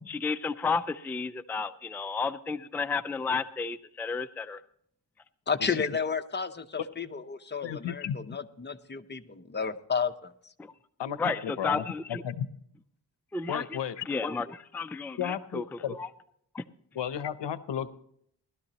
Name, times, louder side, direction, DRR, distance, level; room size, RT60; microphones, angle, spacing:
voice 1, 0.1-4.6 11.2-12.2 13.3-13.8 14.1-16.1 16.5-16.6, left 4 dB, 5° left, 9 dB, 0.4 m, -32 dB
voice 2, 5.5-10.5, left 5 dB, 25° left, 7 dB, 0.8 m, -32 dB
voice 3, 7.6-8.2 11.0-12.5 13.5-14.1 15.2-16.0 16.9-17.9, left 9 dB, 75° left, 14 dB, 0.8 m, -33 dB
19.0 x 12.5 x 2.9 m, 0.67 s
cardioid pair, 80°, 44 cm